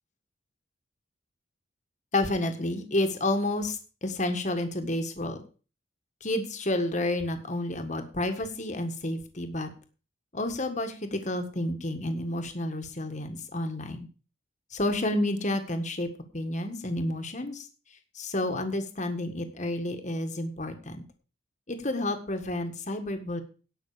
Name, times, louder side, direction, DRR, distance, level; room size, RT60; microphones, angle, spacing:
voice 1, 2.1-5.4 6.2-9.7 10.3-14.1 14.7-16.1 16.3-17.7 18.1-21.0 21.7-23.4, left 1 dB, 40° left, 6 dB, 1.7 m, -30 dB
17.5 x 6.0 x 5.0 m, 0.36 s
head